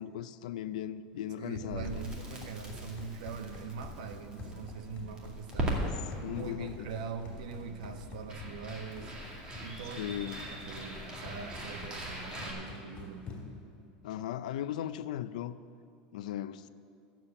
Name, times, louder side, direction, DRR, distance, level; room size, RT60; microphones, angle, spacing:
voice 1, 0.0-2.0 5.8-5.9 6.2-6.9 10.0-10.5 14.0-15.6 16.1-16.7, left 11 dB, 90° left, 0.5 m, -37 dB
Run, 1.2-13.7, left 3 dB, 25° left, 2.9 m, -48 dB
voice 2, 1.4-5.8 6.2-9.1 9.6-13.2, right 5 dB, 85° right, 1.1 m, -42 dB
Crackle, 1.7-12.5, right 1 dB, 20° right, 2.2 m, -40 dB
13.0 x 7.4 x 8.1 m
supercardioid pair, 155°, 4 cm